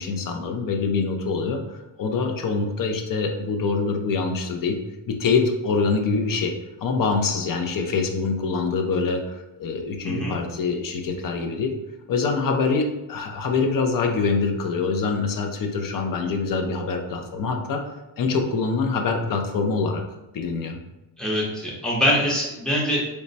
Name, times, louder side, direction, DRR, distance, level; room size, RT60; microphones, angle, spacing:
voice 1, 0.0-4.8 5.1-6.5 6.8-11.7 12.1-17.8 18.2-20.0 20.3-20.8, left 4 dB, 45° left, 4 dB, 0.4 m, -25 dB
voice 2, 21.2-23.0, equal, ahead, -5 dB, 0.6 m, -23 dB
3.2 x 2.1 x 3.9 m, 0.98 s
cardioid pair, 165°, 48 cm